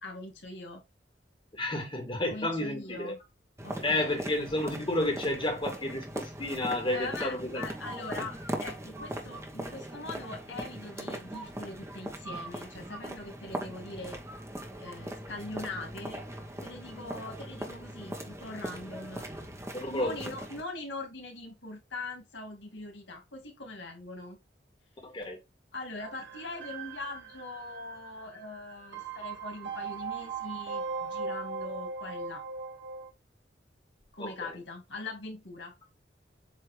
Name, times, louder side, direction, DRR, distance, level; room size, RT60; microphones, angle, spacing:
voice 1, 0.0-0.8 2.3-3.2 3.6-4.2 6.9-14.2 14.8-16.2 16.6-19.3 19.9-24.4 25.7-32.4 34.1-35.7, left 2 dB, 85° left, 2.1 m, -42 dB
voice 2, 1.5-3.1 3.8-7.6 19.8-20.2 25.0-25.4 34.2-34.6, left 1 dB, 30° left, 2.0 m, -31 dB
sound 1, 3.6-20.6, right 1 dB, 15° right, 1.1 m, -40 dB
sound 2, 26.0-33.1, right 5 dB, 75° right, 1.3 m, -39 dB
7.8 x 2.9 x 4.9 m
head